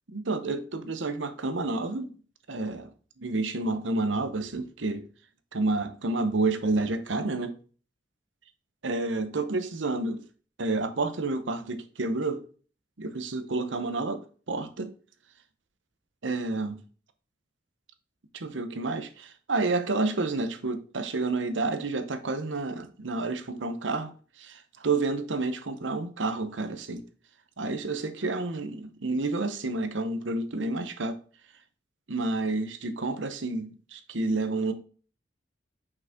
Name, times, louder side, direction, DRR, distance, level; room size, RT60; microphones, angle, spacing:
voice 1, 0.1-2.1 2.5-2.9 3.2-5.1 5.5-7.6 8.8-10.2 10.6-12.4 13.0-14.9 16.2-16.8 18.3-24.1 24.4-27.0 27.6-31.2 32.1-34.7, right 3 dB, 85° right, 0.9 m, -30 dB
5.9 x 5.4 x 3.7 m
head